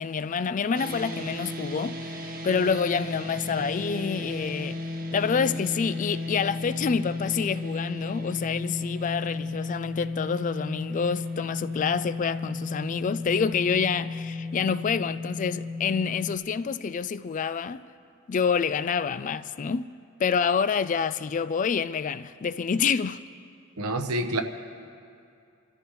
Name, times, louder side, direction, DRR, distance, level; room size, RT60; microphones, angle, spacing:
voice 1, 0.0-4.8 5.1-17.9 18.3-19.9 20.2-23.2, left 6 dB, 35° left, 0.3 m, -27 dB
sound 1, 0.7-16.4, left 3 dB, 40° right, 1.3 m, -34 dB
voice 2, 23.8-24.4, right 1 dB, 90° right, 1.0 m, -27 dB
29.5 x 13.5 x 3.1 m
head